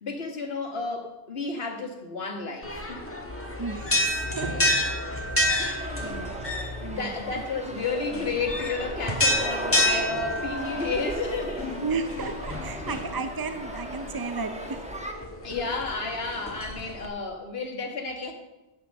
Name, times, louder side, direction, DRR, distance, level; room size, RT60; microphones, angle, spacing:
voice 1, 0.0-3.0 5.6-6.2 6.9-11.7 12.7-12.9 15.4-18.3, left 4 dB, 70° left, 4 dB, 1.8 m, -32 dB
sound 1, 2.6-17.1, left 1 dB, 15° left, 1.5 m, -30 dB
voice 2, 3.6-5.0 5.3-6.3 6.8-7.1 11.8-14.8, right 4 dB, 30° right, 8 dB, 0.4 m, -34 dB
sound 2, 5.8-15.1, right 1 dB, 5° right, 1.2 m, -38 dB
10.5 x 8.1 x 6.5 m, 1.0 s
omnidirectional pair, 1.1 m